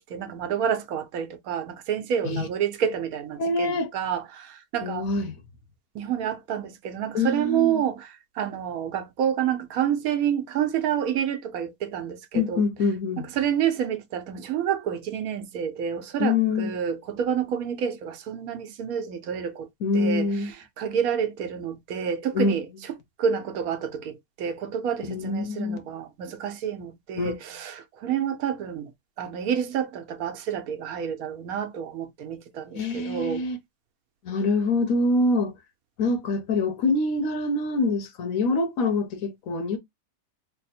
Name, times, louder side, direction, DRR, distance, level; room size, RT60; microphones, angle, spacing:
voice 1, 0.1-5.1 5.9-12.6 13.2-19.7 19.9-28.9 29.2-33.4, right 8 dB, 85° right, 1.1 m, -29 dB
voice 2, 3.4-3.9 4.8-5.4 7.1-7.8 12.3-13.3 16.2-16.7 19.8-20.5 22.3-22.6 25.1-25.8 27.2-27.4 32.7-33.6 34.2-35.5 36.0-39.8, left 3 dB, 75° left, 1.2 m, -25 dB
3.4 x 2.0 x 4.1 m
omnidirectional pair, 1.5 m